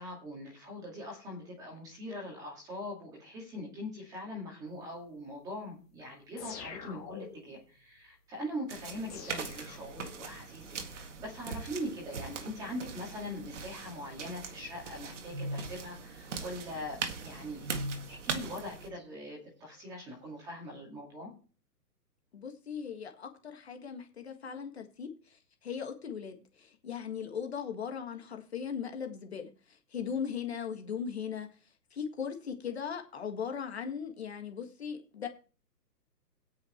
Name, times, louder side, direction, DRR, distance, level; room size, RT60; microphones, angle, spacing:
voice 1, 0.0-17.7 18.1-21.3, left 1 dB, 5° right, -2 dB, 2.3 m, -42 dB
sound 1, 6.4-7.6 9.1-10.4, left 6 dB, 20° left, 2.3 m, -46 dB
sound 2, 8.7-18.9, right 5 dB, 45° right, 1.9 m, -41 dB
sound 3, 14.0-15.9 16.4-16.5 16.8-16.9 17.1-18.2 18.5-19.9, equal, 25° right, 0.8 m, -42 dB
voice 2, 22.3-31.5 31.9-35.3, left 7 dB, 40° left, 4 dB, 1.7 m, -38 dB
17.0 x 6.2 x 4.4 m, 0.38 s
hypercardioid pair, 175°, 50 cm